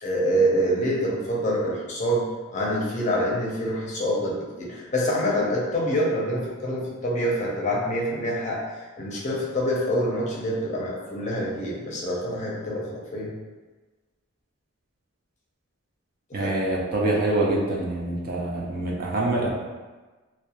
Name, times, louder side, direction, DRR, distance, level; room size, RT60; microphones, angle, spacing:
voice 1, 0.0-2.3 2.5-8.6 9.0-13.3, equal, 35° left, -4 dB, 0.5 m, -26 dB
voice 2, 16.3-19.5, right 2 dB, 45° right, -3 dB, 0.4 m, -25 dB
2.3 x 2.1 x 2.8 m, 1.3 s
head